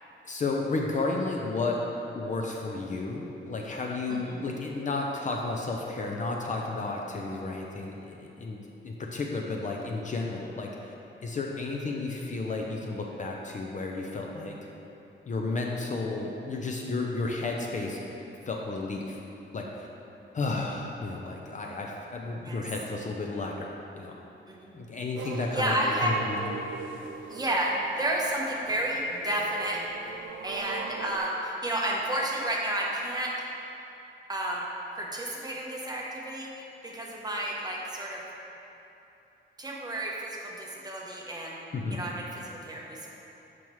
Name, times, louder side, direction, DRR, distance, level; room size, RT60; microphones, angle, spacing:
voice 1, 0.2-1.8 2.1-8.6 8.8-10.7 11.2-14.5 15.3-18.0 18.5-19.2 19.5-19.9 20.3-24.2 24.7-25.7 26.0-26.6 41.7-42.0, left 3 dB, 40° left, 0 dB, 0.5 m, -32 dB
voice 2, 4.1-4.4 22.4-22.6 24.5-24.7 25.5-26.2 27.3-29.8 30.4-33.3 34.3-34.7 35.0-38.2 39.6-41.6 41.9-43.1, right 1 dB, 20° right, -3 dB, 0.8 m, -31 dB
sound 1, 25.1-31.2, right 6 dB, 80° right, 0.5 m, -41 dB
7.0 x 6.0 x 3.1 m, 2.9 s
wide cardioid pair, 175°, 20 cm